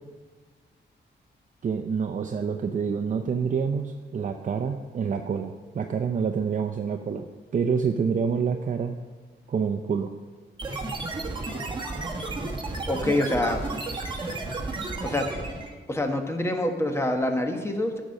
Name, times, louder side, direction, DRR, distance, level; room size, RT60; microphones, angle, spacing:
voice 1, 1.6-7.2 7.5-9.0 9.5-10.1, right 6 dB, 45° right, 5 dB, 0.6 m, -27 dB
sound 1, 10.6-15.8, right 2 dB, 25° right, 1.4 m, -32 dB
voice 2, 12.9-13.6 15.0-15.3 15.9-18.0, left 1 dB, 15° left, 4 dB, 1.2 m, -26 dB
13.5 x 5.5 x 6.4 m, 1.4 s
wide cardioid pair, 145°, 19 cm